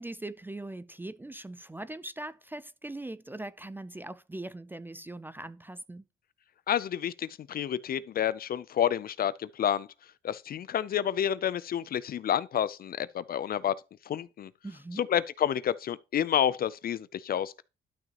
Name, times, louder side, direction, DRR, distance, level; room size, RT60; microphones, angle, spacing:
voice 1, 0.0-6.1 14.6-15.1, right 2 dB, 10° right, 0.4 m, -41 dB
voice 2, 6.7-9.9 10.2-13.8 14.1-14.5 15.0-17.6, left 9 dB, 50° left, 0.4 m, -29 dB
11.5 x 5.9 x 2.9 m
cardioid pair, 90°, 20 cm